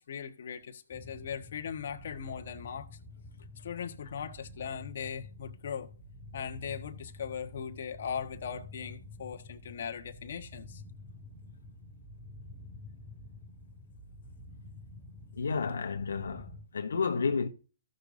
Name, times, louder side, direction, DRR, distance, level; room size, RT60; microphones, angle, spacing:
voice 1, 0.0-2.9 3.6-5.9 6.3-10.8, left 7 dB, 60° left, 1.4 m, -39 dB
sound 1, 0.9-16.6, left 2 dB, 5° left, 2.3 m, -49 dB
voice 2, 15.3-17.5, left 5 dB, 80° left, 1.1 m, -31 dB
15.5 x 6.5 x 2.7 m
hypercardioid pair, 150°, 0 cm